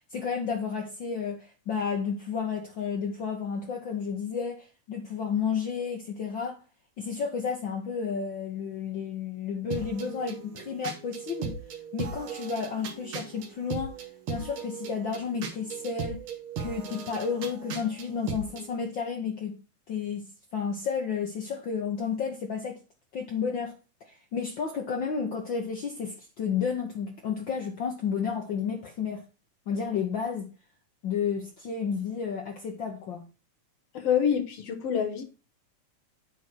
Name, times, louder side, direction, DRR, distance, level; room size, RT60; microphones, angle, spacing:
voice 1, 0.0-6.6 7.0-11.6 11.9-14.0 14.3-16.2 16.6-19.6 19.9-20.2 20.5-22.8 23.1-23.7 24.0-29.2 29.7-30.5 31.0-33.3, left 6 dB, 80° left, 1.0 m, -31 dB
sound 1, 9.7-18.7, right 6 dB, 55° right, 1.6 m, -38 dB
voice 2, 33.9-35.2, left 8 dB, 60° left, 2.0 m, -26 dB
9.2 x 4.2 x 4.4 m
omnidirectional pair, 3.5 m